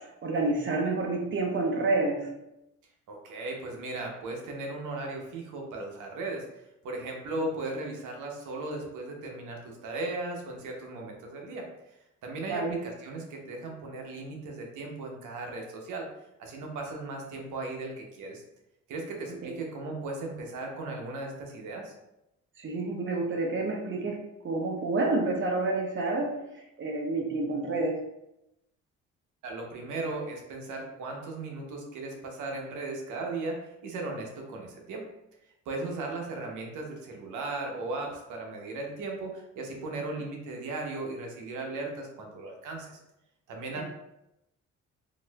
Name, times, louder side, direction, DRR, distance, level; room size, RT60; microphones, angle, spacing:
voice 1, 0.2-2.3 12.5-12.8 19.4-19.5 22.6-24.2 24.4-28.0 43.8-43.9, right 2 dB, 40° right, 1 dB, 0.8 m, -29 dB
voice 2, 3.1-6.4 6.8-11.7 12.2-16.1 16.4-18.4 18.9-21.9 29.4-35.0 35.7-43.0 43.5-43.8, right 2 dB, 80° right, 1 dB, 0.8 m, -37 dB
4.0 x 2.6 x 2.3 m, 0.87 s
cardioid pair, 90°, 30 cm